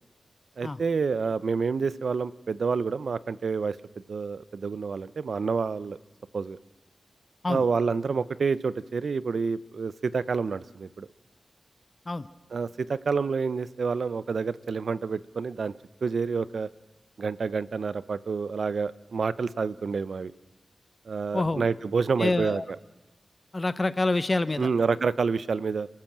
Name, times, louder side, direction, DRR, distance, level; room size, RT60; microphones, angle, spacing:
voice 1, 0.6-3.8 4.1-6.0 6.3-6.6 7.5-11.1 12.5-15.7 16.0-16.7 17.2-20.3 21.1-22.6 24.6-25.9, right 5 dB, 70° right, 17 dB, 0.6 m, -28 dB
voice 2, 21.3-21.6 22.2-22.6 23.5-24.7, left 2 dB, 30° left, 14 dB, 0.7 m, -26 dB
29.5 x 13.5 x 7.4 m, 1.1 s
wide cardioid pair, 95°, 0 cm